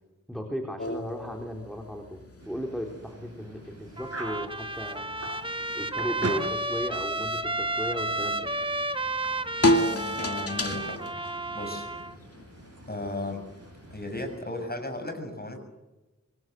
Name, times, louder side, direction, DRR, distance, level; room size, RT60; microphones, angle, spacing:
voice 1, 0.3-5.1 5.7-8.5, equal, ahead, 2 dB, 4.2 m, -36 dB
sound 1, 0.8-14.4, left 1 dB, 50° left, 2.4 m, -34 dB
sound 2, 2.4-14.7, right 2 dB, 50° right, 7.7 m, -44 dB
Trumpet, 4.0-12.2, right 2 dB, 15° right, 1.4 m, -32 dB
voice 2, 9.7-11.0 11.5-11.9 12.9-13.4 13.9-15.6, left 2 dB, 30° left, 6 dB, 6.9 m, -35 dB
26.5 x 23.5 x 7.9 m, 1.1 s
wide cardioid pair, 70°, 30 cm